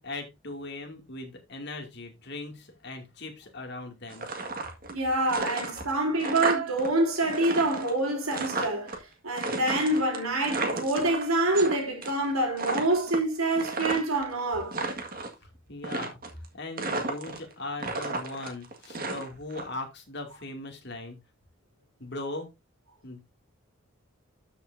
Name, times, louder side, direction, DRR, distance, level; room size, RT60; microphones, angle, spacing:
voice 1, 0.0-4.3 15.7-21.2 22.0-22.5 23.0-23.2, left 2 dB, 55° left, 2.4 m, -39 dB
sound 1, 4.1-5.0 5.3-6.9 7.2-9.0 9.4-11.7 12.0-12.3 12.6-14.2 14.6-15.3 15.8-16.5 16.8-17.5 17.8-19.6, right 3 dB, 45° right, 1.8 m, -33 dB
voice 2, 4.9-14.8, right 2 dB, 90° right, 3.6 m, -26 dB
13.0 x 5.9 x 2.7 m
head